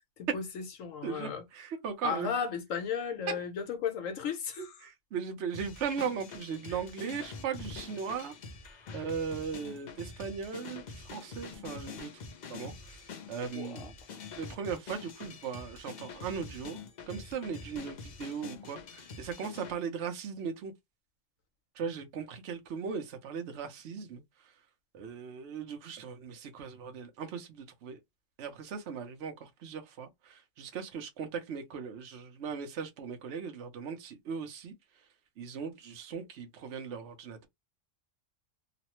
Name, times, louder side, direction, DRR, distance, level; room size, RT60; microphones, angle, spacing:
voice 1, 0.2-1.4 2.0-4.7 6.7-6.8 13.5-13.9, left 7 dB, 80° left, 1.2 m, -35 dB
voice 2, 1.0-2.3 4.6-8.3 8.9-12.1 12.5-13.9 14.4-16.8 17.1-20.7 21.8-24.2 24.9-28.0 28.4-34.7 35.4-37.5, right 6 dB, 65° right, 1.0 m, -38 dB
sound 1, 5.5-19.8, left 4 dB, 50° left, 0.5 m, -46 dB
3.1 x 2.0 x 2.9 m
omnidirectional pair, 1.3 m